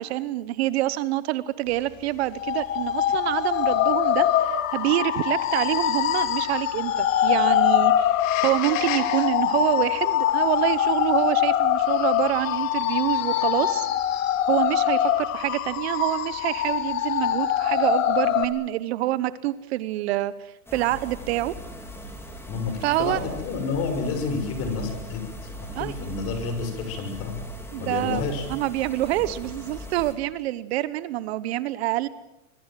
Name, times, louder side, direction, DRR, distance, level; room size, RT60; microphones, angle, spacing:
voice 1, 0.0-13.9 14.5-21.5 22.8-23.2 25.7-25.9 27.7-28.2 28.5-32.1, right 15 dB, 45° right, 16 dB, 1.0 m, -26 dB
sound 1, 2.3-18.5, left 11 dB, 60° left, 2.9 m, -23 dB
sound 2, 20.7-30.1, equal, 5° left, 3.5 m, -39 dB
voice 2, 22.5-25.2 25.6-27.4 27.8-28.5, left 4 dB, 30° left, 7 dB, 6.3 m, -29 dB
25.5 x 22.0 x 7.5 m, 0.91 s
supercardioid pair, 150°, 44 cm